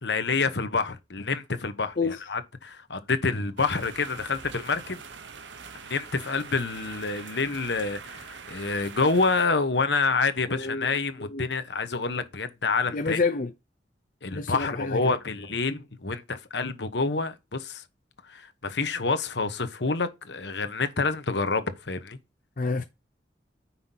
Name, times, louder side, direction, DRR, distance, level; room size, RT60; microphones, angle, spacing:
voice 1, 0.0-5.0 5.8-13.2 14.2-17.8 18.2-22.2, left 4 dB, 70° left, 1.1 m, -28 dB
sound 1, 3.6-9.5, right 5 dB, 85° right, 1.0 m, -43 dB
voice 2, 10.5-11.5 12.9-13.5 14.3-15.1 22.6-22.8, left 4 dB, 45° left, 0.7 m, -29 dB
9.5 x 5.8 x 2.9 m
head